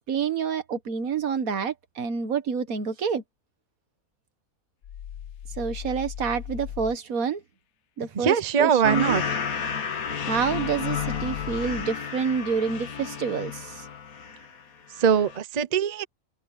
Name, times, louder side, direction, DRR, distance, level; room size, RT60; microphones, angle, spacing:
voice 1, 0.1-3.2 5.6-7.4 8.0-9.2 10.2-13.9, right 6 dB, 80° right, 1.8 m, -28 dB
sound 1, 4.8-7.0 10.3-11.9, left 10 dB, 60° left, 0.9 m, -38 dB
voice 2, 8.1-9.2 15.0-16.0, right 7 dB, 35° right, 0.8 m, -22 dB
sound 2, 8.8-14.6 14.9-15.4, left 7 dB, 90° left, 1.9 m, -32 dB
omnidirectional pair, 1.5 m